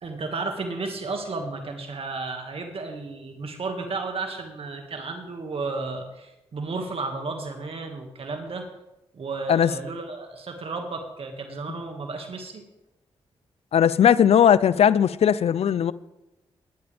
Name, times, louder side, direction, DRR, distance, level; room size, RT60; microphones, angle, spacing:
voice 1, 0.0-8.7 9.1-12.6, right 3 dB, 60° right, 2.0 m, -33 dB
voice 2, 13.7-15.9, left 9 dB, 70° left, 0.5 m, -18 dB
20.0 x 10.5 x 3.5 m
supercardioid pair, 50°, 11 cm